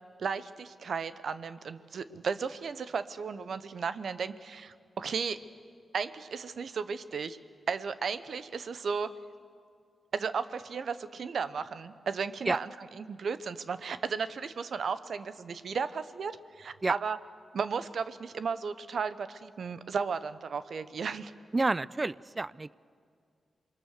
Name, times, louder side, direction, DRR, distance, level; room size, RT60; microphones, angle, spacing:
voice 1, 0.2-5.4 5.9-7.4 7.7-9.1 10.1-17.2 17.5-21.3, right 5 dB, 70° right, 13 dB, 0.9 m, -34 dB
voice 2, 21.5-22.7, right 2 dB, 35° right, 20 dB, 0.5 m, -29 dB
28.0 x 21.5 x 6.6 m, 2.2 s
supercardioid pair, 40°, 0 cm